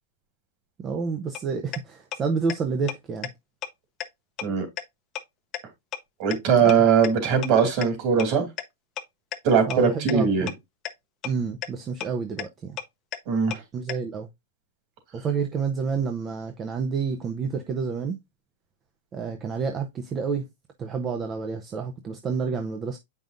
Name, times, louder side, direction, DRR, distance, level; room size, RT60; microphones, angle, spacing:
voice 1, 0.8-3.3 6.6-6.8 9.7-10.5 11.2-12.8 13.7-14.3 15.1-18.2 19.1-20.5 20.8-23.0, right 5 dB, 20° right, 0.6 m, -29 dB
sound 1, 1.3-1.4 1.7-1.8 2.1-2.2 2.5-2.6 2.9-3.0 3.2-3.3 3.6-3.7 4.0-4.1 4.4-4.5 4.8-4.9 5.2-5.3 5.5-5.6 5.9-6.0 6.3-6.4 6.7-6.8 7.0-7.1 7.4-7.5 7.8-7.9 8.2-8.3 8.6-8.7 9.0-9.1 9.3-9.4 9.7-9.8 10.1-10.2 10.5-10.6 10.9-11.0 11.2-11.3 11.6-11.7 12.0-12.1 12.4-12.5 12.8-12.9 13.1-13.2 13.5-13.6 13.9-14.0, left 12 dB, 30° left, 0.7 m, -31 dB
voice 2, 6.2-8.5 9.4-10.5 13.3-13.6, right 6 dB, 40° right, 2.5 m, -20 dB
7.7 x 5.4 x 2.5 m
supercardioid pair, 160°, 0 cm